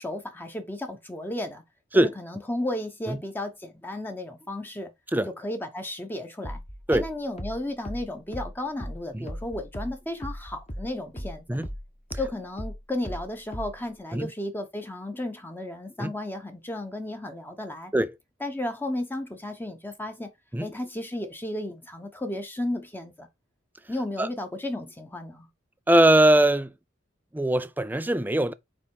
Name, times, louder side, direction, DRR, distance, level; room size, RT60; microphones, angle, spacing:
voice 1, 0.0-1.6 1.9-4.9 5.4-6.6 6.9-11.4 12.1-17.9 18.4-20.3 20.6-23.3 23.9-25.5, left 1 dB, 10° left, 1.1 m, -34 dB
sound 1, 6.4-11.4 11.6-13.9, equal, 30° left, 1.6 m, -37 dB
voice 2, 25.9-26.7 27.3-28.5, right 1 dB, 10° right, 0.4 m, -21 dB
9.1 x 3.5 x 4.8 m
head